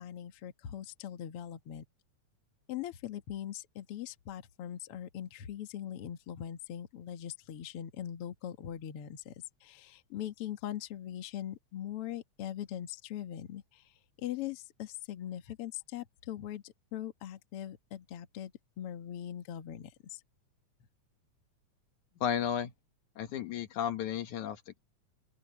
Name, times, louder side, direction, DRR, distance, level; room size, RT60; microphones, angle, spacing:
voice 1, 0.0-1.8 2.7-9.4 9.6-18.5 18.8-20.2, left 11 dB, 55° left, 2.0 m, -41 dB
voice 2, 22.2-22.7 23.2-24.8, left 9 dB, 75° left, 2.8 m, -33 dB
open air
omnidirectional pair, 3.5 m